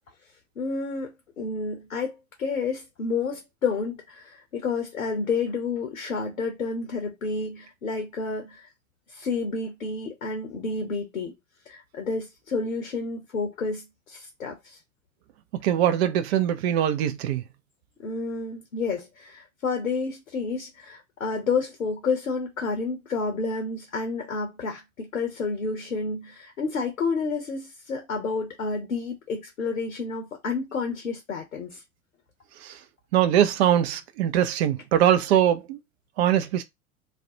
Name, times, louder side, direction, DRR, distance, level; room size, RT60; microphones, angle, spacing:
voice 1, 0.6-8.7 9.1-11.3 11.7-14.8 18.0-31.8, left 4 dB, 80° left, 0.7 m, -30 dB
voice 2, 15.6-17.4 32.6-32.7 33.1-35.8 36.2-36.6, right 10 dB, 50° right, 0.5 m, -22 dB
2.4 x 2.1 x 2.6 m
figure-of-eight pair, 80°, 41 cm